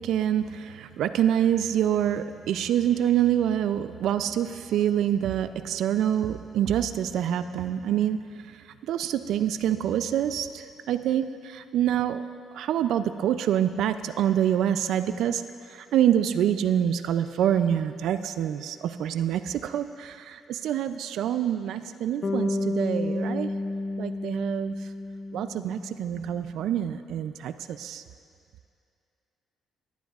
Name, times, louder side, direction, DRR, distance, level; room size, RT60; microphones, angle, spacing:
voice 1, 0.0-12.2 12.5-23.5 24.0-24.8 25.3-28.0, right 10 dB, 80° right, 10 dB, 0.3 m, -26 dB
Bass guitar, 22.2-26.3, left 2 dB, 50° left, 0.6 m, -31 dB
19.5 x 10.5 x 2.4 m, 2.4 s
cardioid pair, 90°, 0 cm